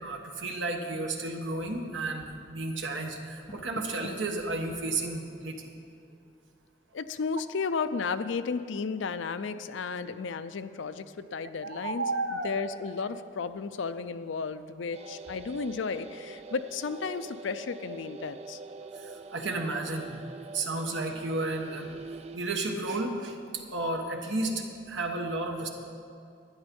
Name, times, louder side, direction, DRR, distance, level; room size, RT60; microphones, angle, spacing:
voice 1, 0.0-5.7 11.4-12.5 12.9-13.1 18.9-20.2 20.5-21.9 22.3-25.7, right 2 dB, 70° right, 3 dB, 1.3 m, -33 dB
Door, 3.2-4.4, left 1 dB, 20° left, 0.9 m, -45 dB
voice 2, 6.9-12.1 12.3-18.6, left 5 dB, 75° left, 12 dB, 0.5 m, -33 dB
sound 1, 14.9-22.4, right 3 dB, 30° right, 0.3 m, -44 dB
12.0 x 9.7 x 5.3 m, 2.5 s
head